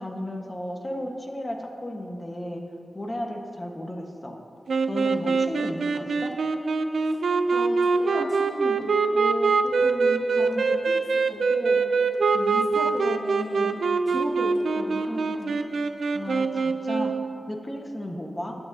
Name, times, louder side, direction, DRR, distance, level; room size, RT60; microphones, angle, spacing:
voice 1, 0.0-2.6 2.9-4.4 4.9-6.3 16.1-17.1 17.5-18.6, left 1 dB, 25° left, 2 dB, 1.4 m, -34 dB
sound 1, 4.7-17.3, right 4 dB, 85° right, 0.5 m, -24 dB
voice 2, 7.5-8.9 9.1-11.8 12.3-13.8 14.1-15.6 17.0-17.2, right 1 dB, 15° right, -8 dB, 2.6 m, -35 dB
19.5 x 7.9 x 2.8 m, 2.5 s
wide cardioid pair, 70°, 0 cm